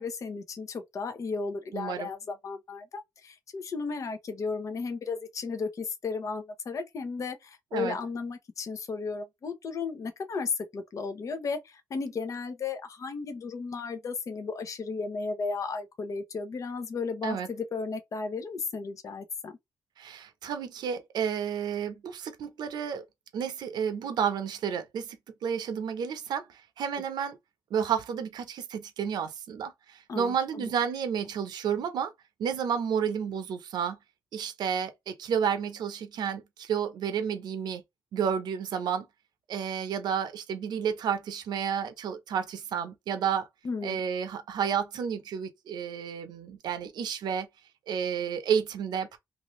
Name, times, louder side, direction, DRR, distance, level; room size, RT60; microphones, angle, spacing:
voice 1, 0.0-19.5 30.1-30.7 43.6-44.0, left 4 dB, 50° left, 0.8 m, -34 dB
voice 2, 1.7-2.1 7.7-8.0 17.2-17.5 20.0-23.0 23.3-25.2 25.4-27.4 27.7-32.1 32.4-34.0 34.3-37.8 38.1-39.1 39.5-43.5 43.8-47.5 47.9-49.2, right 7 dB, 75° right, 0.7 m, -31 dB
2.7 x 2.6 x 3.1 m
cardioid pair, 110°, 7 cm